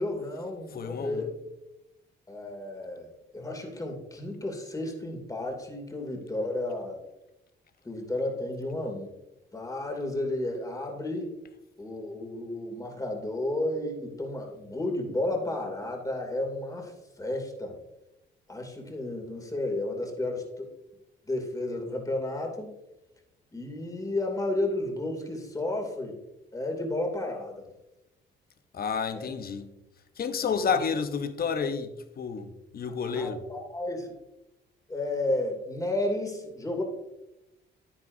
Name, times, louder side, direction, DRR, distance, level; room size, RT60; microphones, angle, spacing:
voice 1, 0.0-1.3 2.3-3.1 3.3-7.0 7.8-9.1 9.5-11.3 11.8-16.9 17.2-17.8 18.5-20.7 21.3-22.7 23.5-26.1 26.5-27.6 29.1-29.3 30.4-30.8 33.1-34.1 34.9-36.8, left 1 dB, 15° left, 2.6 m, -32 dB
voice 2, 0.7-1.2 28.7-29.7 30.2-33.4, left 6 dB, 50° left, 0.9 m, -30 dB
10.0 x 9.6 x 2.7 m
cardioid pair, 90°, 20 cm